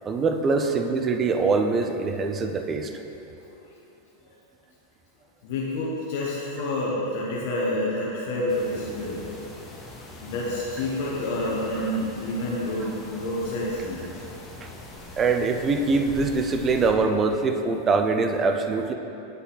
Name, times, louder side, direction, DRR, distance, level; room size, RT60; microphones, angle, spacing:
voice 1, 0.1-2.9 14.6-14.7 15.2-18.9, right 4 dB, 25° right, 6 dB, 0.4 m, -23 dB
voice 2, 3.3-3.7 5.4-9.3 10.2-14.1, left 1 dB, 65° left, -5 dB, 1.1 m, -28 dB
sound 1, 8.5-16.9, left 2 dB, 20° left, 0.9 m, -42 dB
8.1 x 3.9 x 4.1 m, 2.8 s
supercardioid pair, 125°, 0 cm